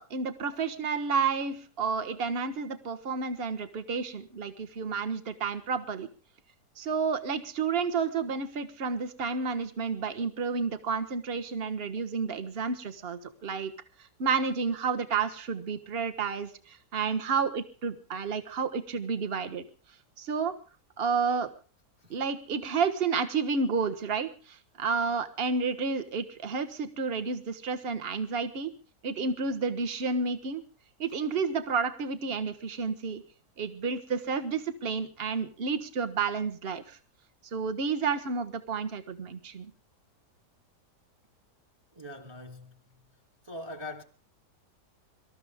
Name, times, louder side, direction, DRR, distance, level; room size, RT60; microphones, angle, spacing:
voice 1, 0.0-6.1 6.8-13.7 14.2-19.6 20.2-20.6 21.0-21.5 22.1-28.7 29.0-30.6 31.0-33.2 33.6-37.0 37.5-39.7, right 5 dB, 40° right, 1.4 m, -30 dB
voice 2, 41.9-42.8 43.4-44.0, left 2 dB, 20° right, 1.1 m, -42 dB
24.5 x 13.5 x 3.6 m
omnidirectional pair, 1.8 m